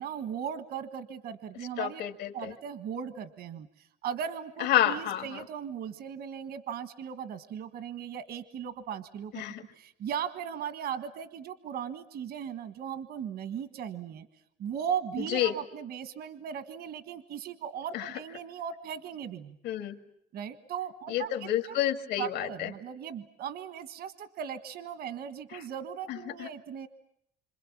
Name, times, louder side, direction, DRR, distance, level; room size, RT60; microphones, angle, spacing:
voice 1, 0.0-2.0 2.3-3.7 4.0-14.3 14.6-19.6 20.3-21.7 22.2-26.9, right 8 dB, 70° right, 11 dB, 1.6 m, -37 dB
voice 2, 1.8-2.5 4.6-5.3 9.3-9.6 15.3-15.5 17.9-18.1 19.6-20.0 21.1-22.7 26.1-26.5, left 12 dB, 80° left, 7 dB, 2.0 m, -29 dB
27.5 x 26.5 x 7.5 m, 0.75 s
cardioid pair, 110°, 17 cm